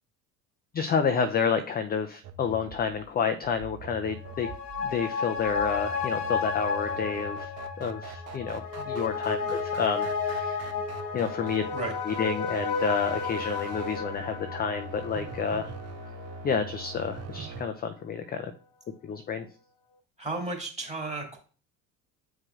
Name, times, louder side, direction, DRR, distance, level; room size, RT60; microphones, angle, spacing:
voice 1, 0.7-4.5 4.8-7.5 7.8-10.6 11.1-11.6 12.1-15.7 16.4-18.5 19.0-19.5, left 6 dB, 20° left, 8 dB, 0.5 m, -29 dB
sound 1, 2.2-17.6, right 3 dB, 35° right, 0.8 m, -43 dB
sound 2, 4.1-16.9 17.3-17.4, left 5 dB, 70° left, 1.2 m, -33 dB
voice 2, 20.2-21.4, right 3 dB, 15° right, 1 dB, 2.2 m, -34 dB
8.2 x 4.8 x 2.4 m, 0.38 s
figure-of-eight pair, 65°, 46 cm